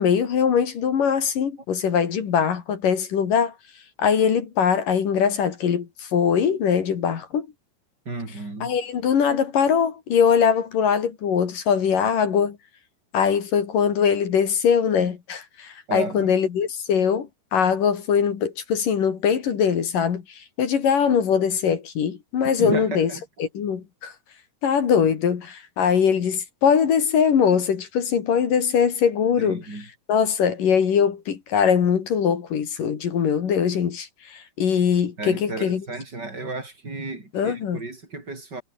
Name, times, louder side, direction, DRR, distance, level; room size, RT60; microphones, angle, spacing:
voice 1, 0.0-3.5 4.0-7.5 8.6-12.6 13.1-23.1 23.4-24.1 24.6-29.6 30.1-35.9 37.3-37.8, left 7 dB, 55° left, 3.8 m, -22 dB
voice 2, 8.1-8.8 15.9-16.3 22.6-23.2 29.4-29.9 35.2-38.6, right 3 dB, 25° right, 6.3 m, -33 dB
omnidirectional pair, 4.9 m